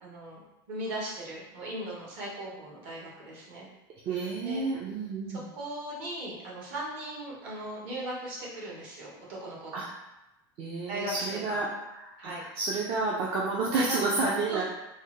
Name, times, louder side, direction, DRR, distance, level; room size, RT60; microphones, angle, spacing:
voice 1, 0.0-0.4 0.7-3.7 4.4-4.6 5.3-9.8 10.9-11.6 12.2-12.4 13.7-14.0 14.5-14.6, right 1 dB, 65° right, -4 dB, 1.3 m, -38 dB
voice 2, 4.1-5.4 9.7-9.9 10.6-11.7 11.9-14.6, right 3 dB, 50° right, -4 dB, 0.5 m, -30 dB
3.4 x 2.1 x 3.1 m, 0.96 s
supercardioid pair, 120°, 13 cm